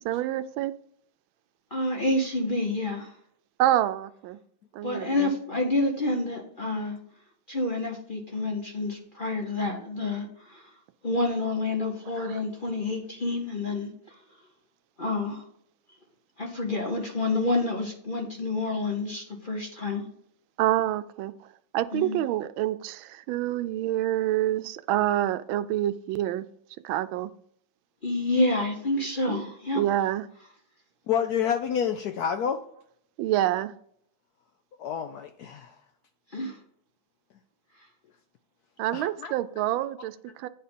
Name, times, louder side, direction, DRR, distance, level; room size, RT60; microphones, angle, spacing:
voice 1, 0.0-0.7 3.6-4.4 4.7-5.3 12.2-12.4 20.6-21.3 21.7-26.4 26.8-27.3 29.3-29.4 29.7-30.2 33.2-33.7 38.8-40.5, right 13 dB, 85° right, 13 dB, 1.4 m, -27 dB
voice 2, 1.7-3.1 4.8-7.0 7.5-10.6 11.0-13.9 15.0-15.4 16.4-20.0 21.9-22.2 28.0-29.8 36.3-36.6, left 2 dB, 40° left, 2 dB, 0.7 m, -28 dB
voice 3, 31.1-32.6 34.8-35.7 38.9-39.3, left 8 dB, 70° left, 7 dB, 0.9 m, -28 dB
9.2 x 4.4 x 5.3 m, 0.66 s
omnidirectional pair, 2.1 m